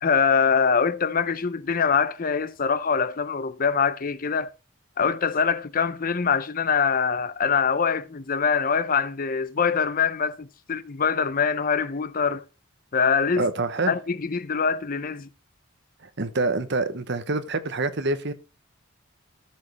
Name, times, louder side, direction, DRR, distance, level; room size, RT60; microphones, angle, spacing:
voice 1, 0.0-4.5 5.0-12.4 12.9-13.5 13.9-15.3, left 6 dB, 45° left, 0.6 m, -24 dB
voice 2, 13.4-13.9 16.0-18.3, right 3 dB, 55° right, 1.0 m, -26 dB
13.5 x 5.3 x 4.2 m
head